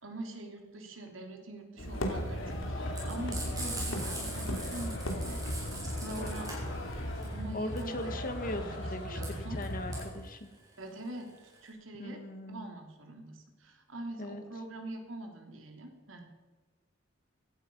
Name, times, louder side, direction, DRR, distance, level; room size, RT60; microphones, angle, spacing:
voice 1, 0.0-6.4 7.2-8.1 8.5-8.8 9.1-9.6 10.8-12.2 12.5-16.2, right 1 dB, 75° right, 3 dB, 3.2 m, -44 dB
sound 1, 1.8-7.4, equal, 85° left, 2.7 m, -39 dB
sound 2, 1.9-10.1, left 1 dB, 70° left, 3.7 m, -38 dB
Frying (food), 2.9-11.7, right 2 dB, 20° right, 6.2 m, -42 dB
voice 2, 7.5-10.5 12.0-12.7 14.2-14.4, left 1 dB, 45° left, 8 dB, 1.7 m, -39 dB
16.5 x 13.5 x 5.5 m, 1.3 s
head